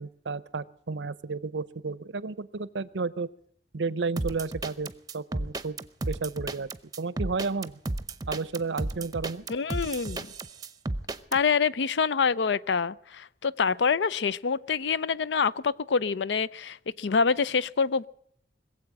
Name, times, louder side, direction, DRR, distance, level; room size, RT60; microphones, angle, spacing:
voice 1, 0.0-3.3 3.7-4.9 5.1-5.8 6.1-6.7 7.0-7.8 8.3-9.4, right 4 dB, 90° right, 19 dB, 0.7 m, -32 dB
sound 1, 4.2-11.4, right 2 dB, 20° right, 0.7 m, -33 dB
voice 2, 9.5-10.3 11.3-18.1, left 5 dB, 85° left, 19 dB, 0.5 m, -26 dB
21.0 x 7.8 x 8.8 m, 0.70 s
head